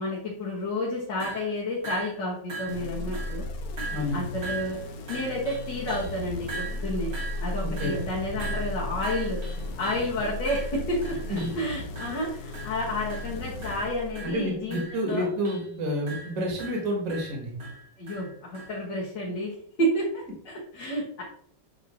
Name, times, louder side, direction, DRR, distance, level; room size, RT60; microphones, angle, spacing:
voice 1, 0.0-3.5 4.1-4.8 5.1-7.1 7.4-9.4 9.8-15.3 18.0-21.2, left 1 dB, 80° left, -7 dB, 2.3 m, -30 dB
sound 1, 1.2-1.5 1.8-2.2 2.5-2.9 3.1-3.4 3.8-4.2 4.4-6.2 6.5-10.1 10.5-11.6 12.0-12.3 12.5-12.8 13.1-13.4 13.6-15.7 16.1-18.8, right 4 dB, 75° right, 2.4 m, -40 dB
sound 2, 2.7-14.6, left 2 dB, 60° left, 1.1 m, -35 dB
voice 2, 3.9-4.2 7.6-7.9 11.3-11.4 14.2-17.5 20.8-20.9, equal, 50° right, -1 dB, 1.7 m, -29 dB
8.3 x 2.9 x 4.2 m, 0.63 s
omnidirectional pair, 1.9 m